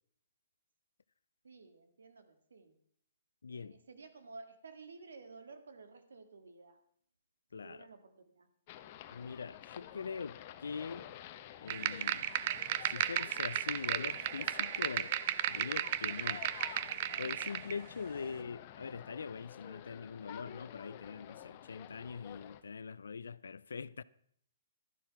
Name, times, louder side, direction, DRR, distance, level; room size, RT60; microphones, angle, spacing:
voice 1, 1.4-2.8 3.5-6.8 7.5-8.5, right 4 dB, 85° right, 2.0 m, -53 dB
voice 2, 3.4-3.8 7.5-7.9 9.1-11.1 11.6-12.3 12.8-15.1 15.5-16.5 17.2-24.0, left 5 dB, 85° left, 0.5 m, -43 dB
sound 1, 8.7-22.6, left 12 dB, 40° left, 1.0 m, -51 dB
sound 2, 11.7-17.7, right 12 dB, 45° right, 0.7 m, -35 dB
12.5 x 11.0 x 5.8 m
hypercardioid pair, 145°, 0 cm